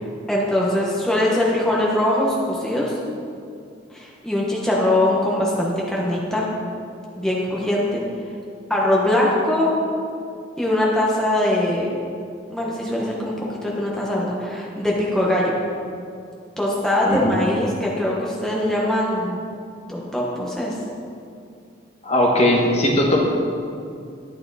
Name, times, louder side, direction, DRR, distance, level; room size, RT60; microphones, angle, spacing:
voice 1, 0.0-3.0 3.9-6.5 7.2-8.0 8.7-9.7 10.6-11.9 12.5-13.3 13.6-15.5 16.6-19.4 19.9-20.8, left 1 dB, 5° left, -4 dB, 1.2 m, -22 dB
voice 2, 22.0-23.2, left 1 dB, 35° left, -2 dB, 1.3 m, -18 dB
11.5 x 8.6 x 4.1 m, 2.5 s
head